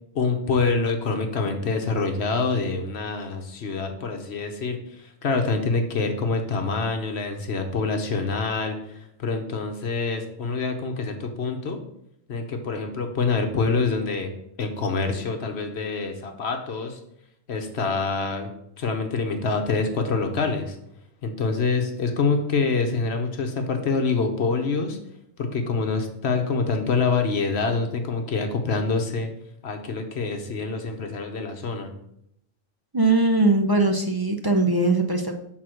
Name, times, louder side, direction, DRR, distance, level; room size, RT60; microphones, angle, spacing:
voice 1, 0.1-11.8 12.3-14.3 14.6-17.0 17.5-18.5 18.8-20.8 21.2-25.0 25.4-29.3 29.6-31.9, left 4 dB, 60° left, 5 dB, 1.1 m, -26 dB
voice 2, 32.9-35.3, right 2 dB, 40° right, 3 dB, 0.3 m, -20 dB
6.0 x 4.0 x 6.2 m, 0.76 s
omnidirectional pair, 1.3 m